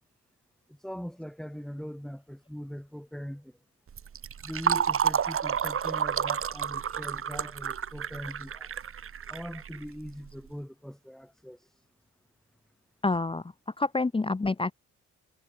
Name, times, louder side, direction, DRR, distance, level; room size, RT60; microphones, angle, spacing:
voice 1, 0.8-3.5 4.4-8.7 9.3-11.8, equal, ahead, 6.7 m, -41 dB
Fill (with liquid), 3.9-10.3, right 8 dB, 45° right, 1.4 m, -30 dB
voice 2, 13.0-14.7, left 3 dB, 15° left, 1.1 m, -28 dB
cardioid pair, 90°, 31 cm